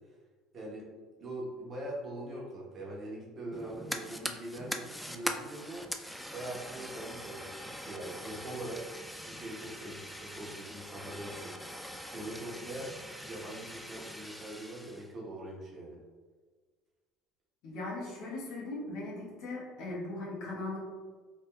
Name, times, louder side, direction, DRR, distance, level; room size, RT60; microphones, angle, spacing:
voice 1, 0.5-0.8 1.2-5.9 6.3-8.8 9.3-11.5 11.9-12.9 13.2-16.0, right 1 dB, 40° right, -4 dB, 1.0 m, -42 dB
Fire, 3.5-15.1, equal, ahead, 0.3 m, -42 dB
voice 2, 17.6-20.8, left 2 dB, 65° left, -5 dB, 1.1 m, -39 dB
3.2 x 2.8 x 2.3 m, 1.5 s
supercardioid pair, 80°, 0 cm